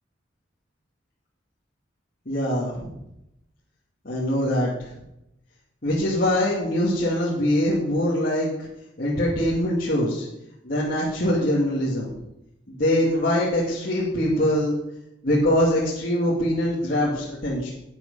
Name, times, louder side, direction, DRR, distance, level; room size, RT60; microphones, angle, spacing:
voice 1, 2.3-3.0 4.0-4.9 5.8-8.7 9.0-10.3 10.6-12.1 12.7-14.7 15.2-17.7, left 1 dB, 50° left, -6 dB, 2.3 m, -23 dB
11.0 x 9.3 x 5.5 m, 0.85 s
head